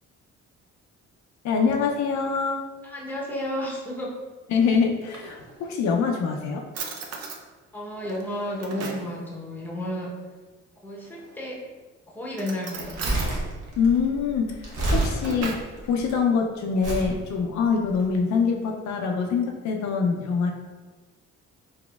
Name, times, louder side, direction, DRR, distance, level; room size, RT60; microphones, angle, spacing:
voice 1, 1.4-2.7 4.5-6.6 13.8-20.5, left 5 dB, 65° left, 2 dB, 0.5 m, -24 dB
voice 2, 2.8-4.1 7.7-10.1 10.8-11.6 12.1-13.0, left 1 dB, 5° left, -3 dB, 0.8 m, -32 dB
Drawer open or close, 4.8-5.8 6.3-6.4 6.7-7.4 8.0-9.1 11.0-11.6 12.3-13.3 14.7-15.8, right 4 dB, 55° right, 0.6 m, -37 dB
Crumpling crinkling, 12.8-16.1 16.8-17.1 17.9-18.0, right 2 dB, 85° right, 1.0 m, -28 dB
4.0 x 2.8 x 2.3 m, 1.3 s
cardioid pair, 90°, 30 cm